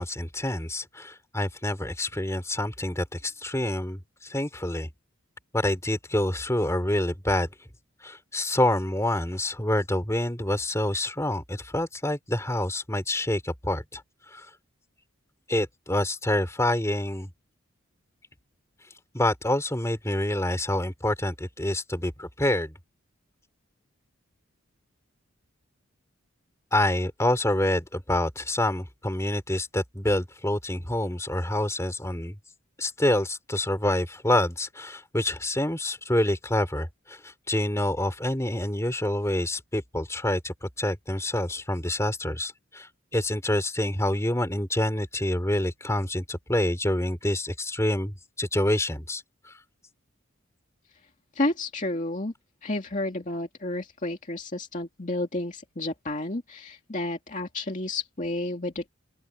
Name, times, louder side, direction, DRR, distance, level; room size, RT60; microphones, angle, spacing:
voice 1, 0.0-4.9 5.5-7.5 8.0-14.0 14.3-14.5 15.5-17.3 19.1-22.7 26.7-32.4 32.8-37.2 37.5-49.2, left 1 dB, 15° left, 3.5 m, -27 dB
voice 2, 51.3-52.3 52.6-58.9, left 2 dB, 35° left, 2.2 m, -31 dB
open air
head